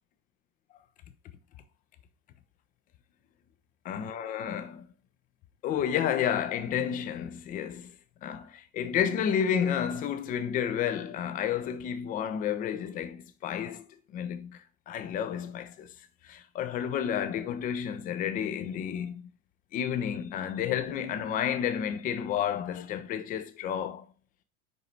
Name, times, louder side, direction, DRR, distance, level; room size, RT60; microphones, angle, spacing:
voice 1, 3.9-4.9 5.6-7.9 8.2-13.9 14.1-15.9 16.2-19.3 19.7-24.1, left 9 dB, 20° left, 0.5 m, -31 dB
5.1 x 5.0 x 4.3 m
figure-of-eight pair, 85°, 43 cm